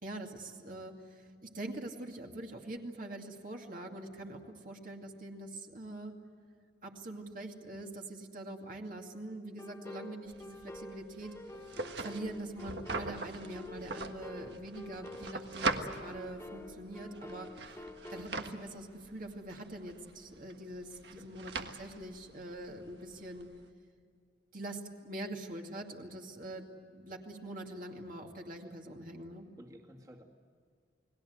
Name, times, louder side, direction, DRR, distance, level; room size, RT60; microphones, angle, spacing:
voice 1, 0.0-6.2 6.8-11.7 12.0-17.9 18.1-23.5 24.5-26.7 26.9-29.5, right 1 dB, 50° right, 1 dB, 2.4 m, -44 dB
sound 1, 9.6-18.3, left 2 dB, 15° left, 1.4 m, -48 dB
sound 2, 10.3-23.7, right 3 dB, 70° right, 1.6 m, -42 dB
voice 2, 29.6-30.2, equal, 20° right, -1 dB, 2.2 m, -54 dB
29.5 x 20.5 x 8.0 m, 2.2 s
head